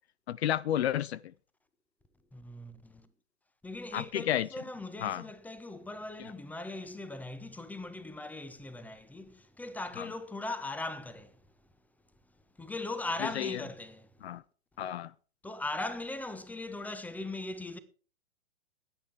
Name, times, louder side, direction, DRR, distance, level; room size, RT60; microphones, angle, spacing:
voice 1, 0.3-1.2 3.9-4.5 5.0-5.2 10.0-10.1 13.2-13.6 14.2-14.4 14.8-15.1, left 11 dB, 65° left, 0.6 m, -31 dB
voice 2, 2.3-3.1 3.6-11.4 12.6-14.1 15.4-17.8, left 2 dB, 5° left, 1.2 m, -39 dB
21.0 x 8.6 x 3.5 m
hypercardioid pair, 115°, 35 cm